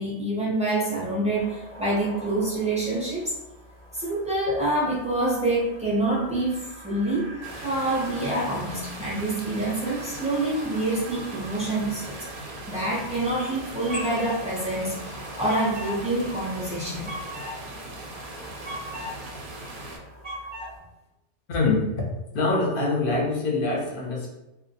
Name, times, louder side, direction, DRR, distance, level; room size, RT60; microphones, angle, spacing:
voice 1, 0.0-3.3 3.9-7.3 7.6-17.1, right 2 dB, 10° right, -7 dB, 0.3 m, -27 dB
sound 1, 1.3-20.8, equal, 10° left, 0.7 m, -41 dB
sound 2, 7.4-20.0, right 2 dB, 60° right, 0.6 m, -40 dB
voice 2, 21.5-22.0 22.3-24.3, left 3 dB, 60° left, -2 dB, 0.7 m, -24 dB
2.2 x 2.1 x 2.7 m, 0.95 s
omnidirectional pair, 1.2 m